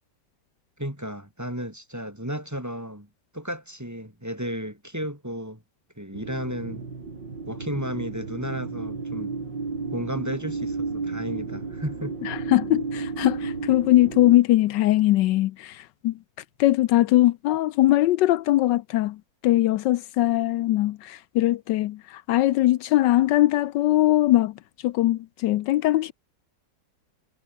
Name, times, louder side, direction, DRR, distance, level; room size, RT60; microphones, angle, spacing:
voice 1, 0.8-3.1 3.3-5.6 6.0-6.9 7.5-9.3 9.9-12.2, equal, 10° right, 3.0 m, -33 dB
sound 1, 6.1-14.4, right 4 dB, 85° right, 4.3 m, -33 dB
voice 2, 12.3-15.8 16.0-16.1 16.6-19.2 19.4-22.0 22.3-24.5 24.8-26.1, left 15 dB, 80° left, 1.3 m, -21 dB
omnidirectional pair, 1.9 m